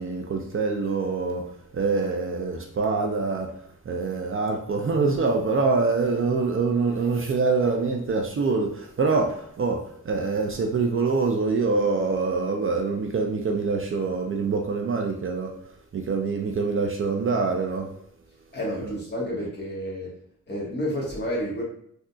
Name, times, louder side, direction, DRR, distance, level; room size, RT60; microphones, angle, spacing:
voice 1, 0.0-1.5 1.7-3.5 3.9-15.5 15.9-17.9, right 4 dB, 40° right, 0.4 m, -25 dB
voice 2, 18.5-20.1 20.5-21.6, equal, 35° left, 1.2 m, -30 dB
3.6 x 2.6 x 2.3 m
wide cardioid pair, 100°, 32 cm